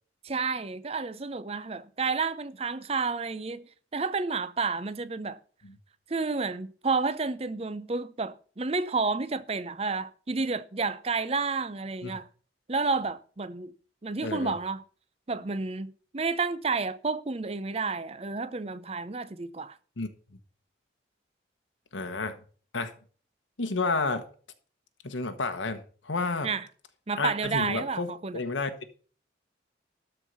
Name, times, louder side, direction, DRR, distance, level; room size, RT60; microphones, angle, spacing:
voice 1, 0.2-5.4 6.1-12.3 12.7-13.7 14.0-14.8 15.3-19.8 26.4-26.7 27.1-28.4, right 4 dB, 35° right, 0.6 m, -30 dB
voice 2, 14.2-14.5 20.0-20.1 21.9-22.4 22.7-22.9 23.6-24.2 25.0-26.5 27.2-28.7, left 3 dB, 90° left, 1.2 m, -31 dB
12.5 x 4.6 x 8.1 m
head